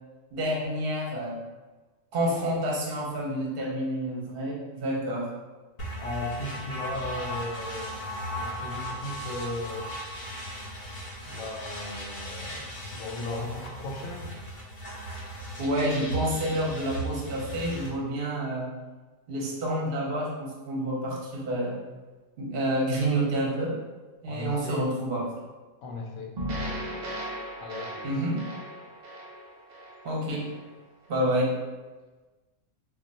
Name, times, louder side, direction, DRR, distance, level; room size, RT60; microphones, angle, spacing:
voice 1, 0.3-1.4 2.1-5.3 15.6-18.7 19.3-21.8 22.4-23.8 24.2-25.3 28.0-28.5 30.0-30.5 31.1-31.5, right 1 dB, 55° right, -3 dB, 0.7 m, -28 dB
sound 1, 5.8-17.9, right 1 dB, 50° left, 0.7 m, -37 dB
voice 2, 6.0-8.0 8.3-9.9 11.2-14.3 24.3-24.8 25.8-26.3 27.6-28.1, left 2 dB, 80° left, 0 dB, 1.0 m, -36 dB
sound 2, 26.4-30.7, equal, 75° right, 0.4 m, -37 dB
2.3 x 2.2 x 3.9 m, 1.3 s
omnidirectional pair, 1.4 m